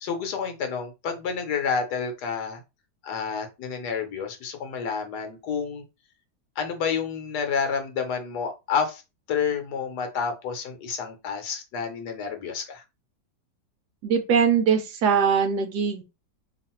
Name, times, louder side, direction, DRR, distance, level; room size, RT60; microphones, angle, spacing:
voice 1, 0.0-2.6 3.0-5.8 6.6-9.0 9.3-12.8, left 6 dB, 70° left, 1.3 m, -29 dB
voice 2, 14.0-16.0, right 6 dB, 70° right, 1.1 m, -22 dB
3.0 x 2.5 x 4.2 m
omnidirectional pair, 2.0 m